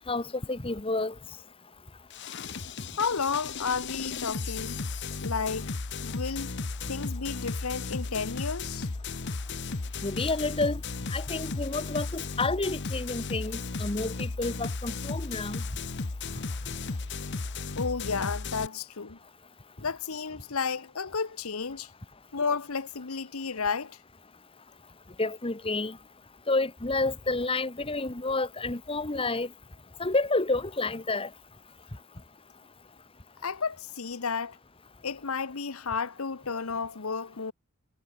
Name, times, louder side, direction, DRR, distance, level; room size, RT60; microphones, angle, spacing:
voice 1, 0.1-1.1 10.0-10.8 11.1-15.6 25.2-26.0 26.5-29.5 30.0-31.3, left 2 dB, 25° left, 1.2 m, -29 dB
sound 1, 2.1-18.7, left 4 dB, 55° left, 1.0 m, -35 dB
voice 2, 3.0-4.8 5.2-5.7 6.0-6.5 6.9-8.9 17.8-19.2 19.8-21.9 22.3-24.0 33.4-34.6 35.0-37.5, left 5 dB, 85° left, 1.0 m, -32 dB
head